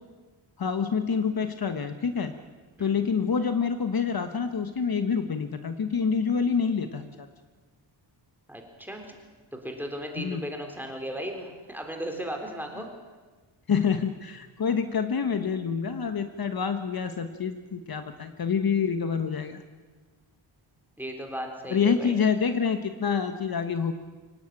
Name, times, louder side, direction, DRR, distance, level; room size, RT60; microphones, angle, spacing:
voice 1, 0.6-2.3 2.8-7.3 10.2-10.4 12.8-12.9 13.7-19.6 21.7-23.9, left 6 dB, 50° left, 8 dB, 1.2 m, -27 dB
voice 2, 8.5-9.2 9.5-12.9 21.0-22.1, equal, 5° right, 2 dB, 3.7 m, -36 dB
24.5 x 18.0 x 8.9 m, 1.3 s
wide cardioid pair, 140°, 47 cm